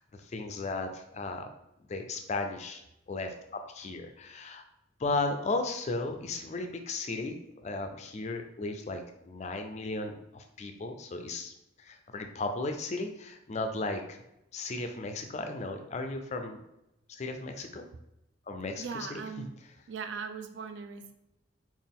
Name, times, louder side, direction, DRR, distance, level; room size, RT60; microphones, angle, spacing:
voice 1, 0.0-1.5 1.9-2.8 3.1-4.6 5.0-7.4 7.6-14.2 14.5-16.6 17.2-17.9 18.5-18.8 19.1-19.2, left 2 dB, 35° left, 6 dB, 0.4 m, -35 dB
voice 2, 18.8-19.5 19.9-21.1, right 5 dB, 60° right, 7 dB, 0.4 m, -39 dB
4.0 x 2.4 x 3.5 m, 0.86 s
head